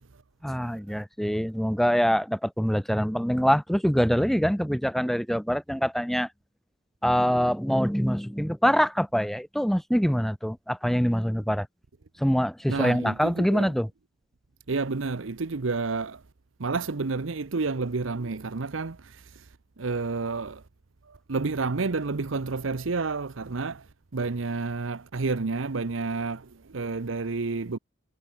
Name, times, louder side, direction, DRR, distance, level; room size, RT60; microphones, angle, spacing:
voice 1, 0.4-6.3 7.0-11.7 12.2-13.9, equal, ahead, 1.4 m, -24 dB
voice 2, 12.7-13.7 14.7-16.2 16.6-19.5 19.8-20.6 21.1-27.8, right 3 dB, 85° right, 0.8 m, -30 dB
head